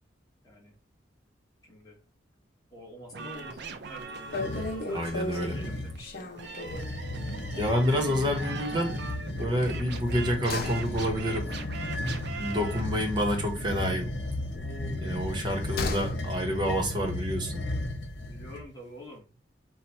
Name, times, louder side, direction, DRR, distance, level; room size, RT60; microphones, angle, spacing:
voice 1, 0.4-0.7 1.6-2.0 2.7-6.3 14.5-15.5 18.1-19.3, equal, 20° left, 1.7 m, -48 dB
sound 1, 3.1-12.8, right 5 dB, 65° right, 0.6 m, -41 dB
sound 2, 3.4-3.7 4.0-4.1 4.3-7.0 7.4-7.6 7.8-7.9 9.6-13.5 13.8-16.2 16.5-16.6, left 2 dB, 55° left, 0.6 m, -37 dB
sound 3, 4.3-4.8 5.4-6.0 6.6-18.6, left 1 dB, 85° left, 1.0 m, -35 dB
voice 2, 4.9-5.6 7.6-9.0 9.4-11.5 12.4-14.1 15.0-17.6, equal, 25° right, 1.1 m, -28 dB
4.5 x 2.5 x 4.2 m
head